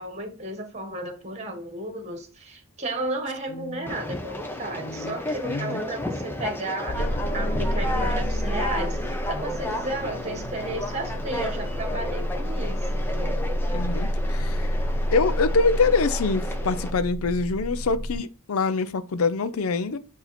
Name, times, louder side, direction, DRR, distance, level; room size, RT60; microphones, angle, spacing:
voice 1, 0.0-13.4, right 2 dB, 30° right, 1.4 m, -33 dB
voice 2, 3.5-4.2 4.8-5.2 5.5-5.8 13.7-14.8 15.1-20.0, left 4 dB, 80° left, 0.5 m, -25 dB
Conversation, 3.9-16.9, left 1 dB, 10° left, 0.7 m, -33 dB
sound 1, 6.9-18.2, equal, 50° left, 0.8 m, -29 dB
8.2 x 2.8 x 4.2 m
head